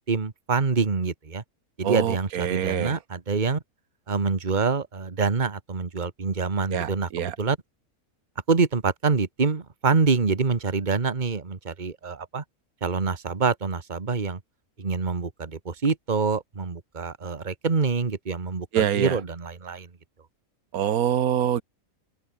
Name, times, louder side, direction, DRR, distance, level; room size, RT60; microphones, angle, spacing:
voice 1, 0.1-1.4 1.8-3.6 4.1-7.6 8.5-12.4 12.8-14.4 14.8-19.9, right 4 dB, 30° right, 1.7 m, -26 dB
voice 2, 1.8-3.0 6.7-7.4 18.7-19.2 20.7-21.6, right 9 dB, 80° right, 1.5 m, -25 dB
open air
omnidirectional pair, 1.5 m